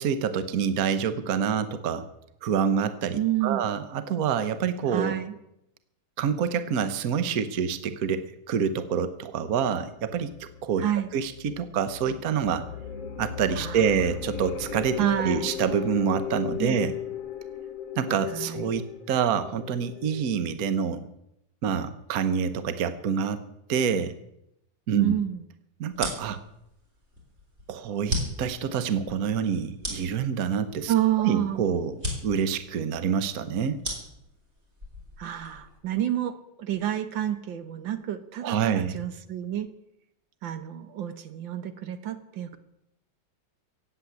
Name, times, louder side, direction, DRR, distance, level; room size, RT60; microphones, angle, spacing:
voice 1, 0.0-2.1 2.4-5.1 6.2-10.8 11.1-12.6 13.2-16.9 18.0-21.1 21.6-23.4 23.7-24.2 24.9-25.1 25.8-26.4 27.7-30.9 31.2-33.8 38.4-39.0, right 7 dB, 55° right, 11 dB, 1.3 m, -27 dB
voice 2, 3.1-3.6 4.9-5.4 10.8-11.1 13.6-13.8 15.0-15.5 16.6-16.8 18.3-18.7 24.9-25.4 30.9-31.6 35.2-39.7 40.4-42.6, right 11 dB, 85° right, 10 dB, 1.9 m, -29 dB
sound 1, 10.0-20.3, left 8 dB, 55° left, 1.2 m, -37 dB
sound 2, 25.9-35.8, left 1 dB, 35° right, 4.2 m, -37 dB
16.0 x 8.5 x 8.6 m, 0.82 s
omnidirectional pair, 2.0 m